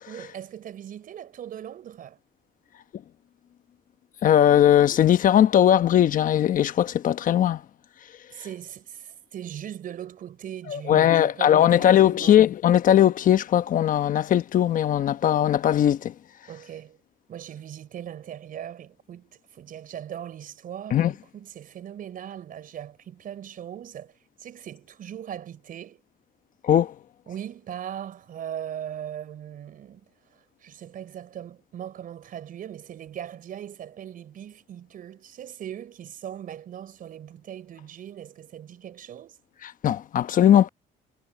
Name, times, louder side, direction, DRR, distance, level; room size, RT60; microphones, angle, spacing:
voice 1, 0.1-2.2 8.3-12.4 16.5-17.0 17.3-26.0 27.3-30.0 30.3-39.4, right 10 dB, 55° right, 4.8 m, -39 dB
voice 2, 4.2-7.6 10.7-16.1 20.9-21.1 26.6-26.9 39.6-40.7, left 10 dB, 50° left, 1.0 m, -19 dB
cardioid pair, 110°, 17 cm